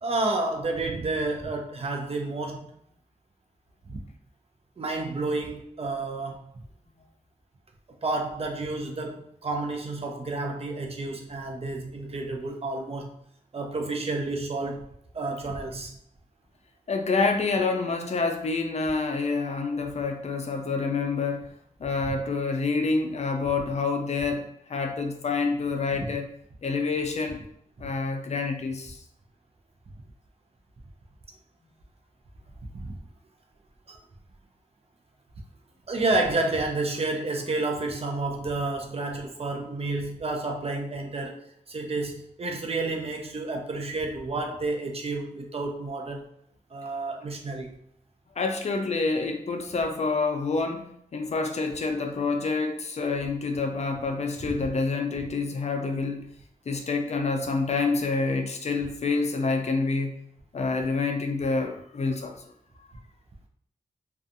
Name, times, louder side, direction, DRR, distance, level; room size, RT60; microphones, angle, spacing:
voice 1, 0.0-2.7 3.9-4.0 4.8-6.5 8.0-13.2 13.5-14.8 15.1-15.9 26.0-26.1 32.7-32.9 33.9-34.0 35.9-41.4 41.7-46.2 46.7-47.8, right 2 dB, 45° right, 2 dB, 0.5 m, -30 dB
voice 2, 16.9-21.5 21.8-26.3 26.6-27.4 27.8-29.0 48.4-56.3 56.7-60.1 60.5-62.3, left 4 dB, 50° left, 4 dB, 0.4 m, -27 dB
2.6 x 2.3 x 2.6 m, 0.67 s
wide cardioid pair, 85°, 14 cm